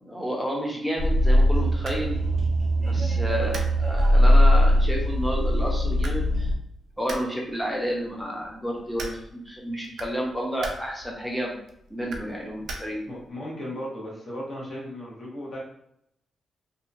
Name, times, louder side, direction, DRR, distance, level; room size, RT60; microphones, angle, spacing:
voice 1, 0.0-2.2 2.8-6.5 7.0-11.5 11.9-13.0, equal, ahead, -2 dB, 0.7 m, -30 dB
sound 1, 1.0-6.5, equal, 40° right, 0.7 m, -20 dB
sound 2, 1.3-13.3, right 2 dB, 75° right, 0.4 m, -43 dB
voice 2, 13.1-15.6, equal, 45° left, -5 dB, 1.0 m, -36 dB
2.7 x 2.2 x 2.6 m, 0.74 s
wide cardioid pair, 135°, 0 cm